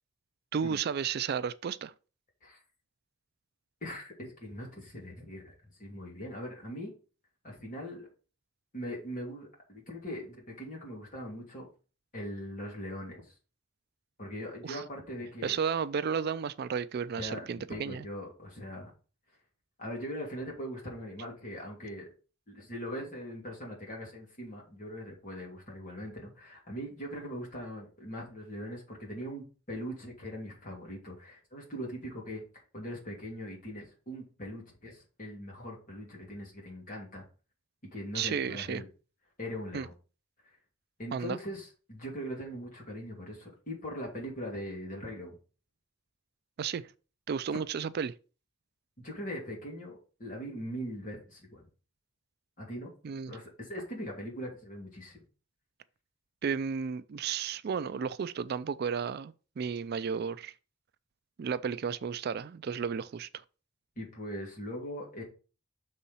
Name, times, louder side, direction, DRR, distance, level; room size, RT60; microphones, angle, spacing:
voice 1, 0.5-1.9 14.6-14.8 15.4-18.1 38.1-38.8 39.7-39.9 41.1-41.4 46.6-46.9 47.3-48.1 53.0-53.4 56.4-60.5 61.4-63.3, right 6 dB, 55° right, 0.4 m, -33 dB
voice 2, 3.8-6.9 7.4-8.1 8.7-11.7 12.1-13.2 14.2-15.6 17.2-18.9 19.8-22.1 22.5-32.4 32.7-37.3 37.9-38.9 39.4-39.9 41.0-45.4 49.0-51.6 52.6-52.9 53.3-55.2 64.0-65.2, equal, 45° left, 2.9 m, -41 dB
6.4 x 4.3 x 5.4 m
head